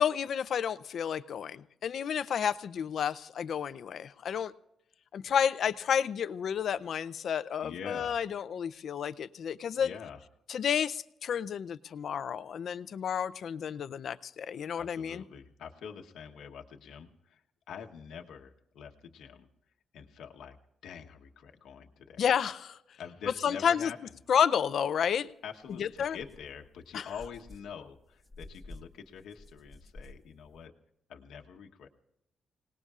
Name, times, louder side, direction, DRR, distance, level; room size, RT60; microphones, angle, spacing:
voice 1, 0.0-4.5 5.1-9.9 10.5-15.2 22.2-22.8 23.4-23.9 24.3-25.3 25.8-26.2 26.9-27.1, left 8 dB, 55° left, 15 dB, 0.5 m, -31 dB
voice 2, 7.6-8.2 9.8-10.2 14.7-17.4 17.7-19.5 19.9-20.6 20.8-22.2 23.0-24.0 25.4-30.7 31.1-31.9, left 7 dB, 80° left, 2 dB, 1.1 m, -45 dB
sound 1, 25.1-25.2 25.6-30.7, left 2 dB, ahead, 1.3 m, -52 dB
26.0 x 19.0 x 2.5 m, 0.84 s
cardioid pair, 145°, 0 cm